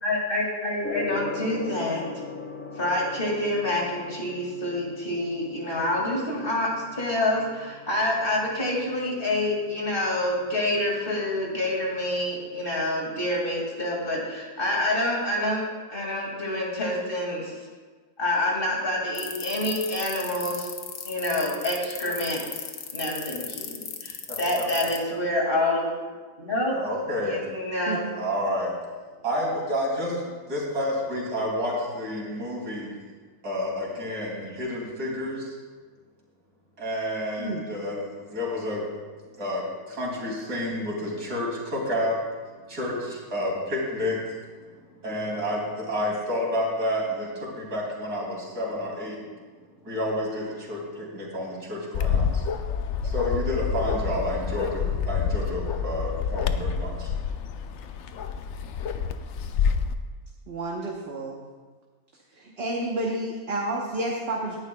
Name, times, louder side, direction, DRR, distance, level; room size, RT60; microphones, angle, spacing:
voice 1, 0.0-2.0 2.8-15.6 15.9-17.5 18.2-20.7 21.0-22.6 22.9-25.9 26.4-26.8 27.2-28.0, left 1 dB, 35° left, -3 dB, 2.4 m, -27 dB
Gong, 0.8-12.8, left 5 dB, 15° left, 0.5 m, -42 dB
sound 1, 19.1-25.0, left 8 dB, 85° left, 1.5 m, -35 dB
voice 2, 26.7-27.4 28.2-28.7 29.2-32.9 33.4-35.5 36.8-38.8 39.4-42.2 42.7-44.4 45.0-49.2 49.8-52.4 53.0-57.1, left 1 dB, 80° right, -3 dB, 3.2 m, -30 dB
Bark, 51.9-59.9, left 6 dB, 65° left, 0.7 m, -28 dB
voice 3, 60.5-61.4 62.3-64.6, right 1 dB, 45° right, -1 dB, 1.2 m, -30 dB
18.0 x 10.5 x 2.2 m, 1.4 s
omnidirectional pair, 1.6 m